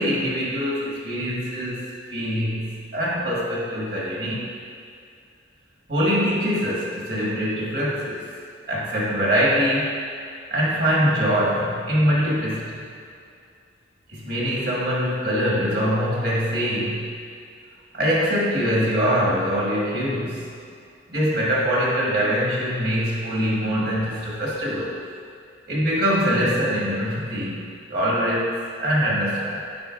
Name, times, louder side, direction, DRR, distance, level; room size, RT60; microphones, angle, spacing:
voice 1, 0.0-1.8 2.1-4.4 5.9-8.2 8.7-9.9 10.5-12.8 14.1-17.1 17.9-20.5 21.1-25.0 25.7-29.6, equal, 55° right, -5 dB, 1.5 m, -23 dB
9.5 x 5.4 x 2.5 m, 2.4 s
head